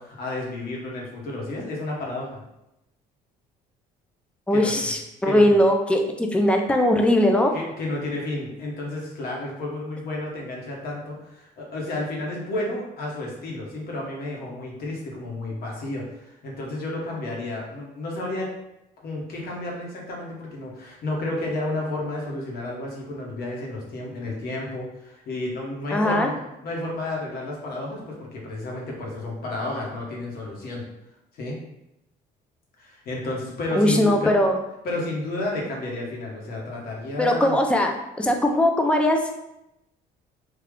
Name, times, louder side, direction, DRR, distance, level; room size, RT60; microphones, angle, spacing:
voice 1, 0.0-2.4 4.5-4.9 5.2-5.4 7.5-18.5 19.0-30.8 31.4-31.6 32.8-34.4 34.8-37.6, left 2 dB, 65° left, -2 dB, 1.2 m, -31 dB
voice 2, 4.5-7.5 25.9-26.3 33.8-34.6 37.2-37.9 38.2-39.2, left 1 dB, 5° left, 3 dB, 0.4 m, -20 dB
3.4 x 2.4 x 3.6 m, 0.88 s
cardioid pair, 110°, 17 cm